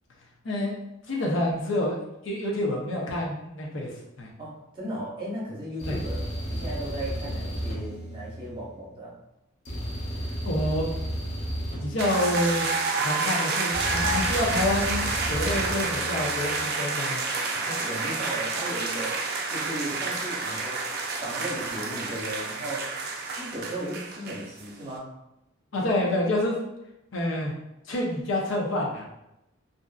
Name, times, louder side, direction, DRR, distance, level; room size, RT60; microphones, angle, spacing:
voice 1, 0.4-0.8 1.1-2.0 2.2-4.3 5.9-6.0 10.4-10.9 11.8-12.7 13.0-17.2 25.7-26.6 27.1-27.5 27.9-29.0, left 1 dB, 75° left, -2 dB, 0.7 m, -28 dB
voice 2, 4.4-6.2 6.5-9.1 17.7-20.8 21.2-22.9 23.3-25.1, right 1 dB, 25° right, -6 dB, 0.8 m, -36 dB
sound 1, 5.8-8.9 9.6-12.9 13.7-16.6, equal, 35° left, 0.6 m, -33 dB
sound 2, 12.0-24.7, right 3 dB, 55° right, 0.4 m, -29 dB
2.6 x 2.4 x 2.3 m, 0.87 s
head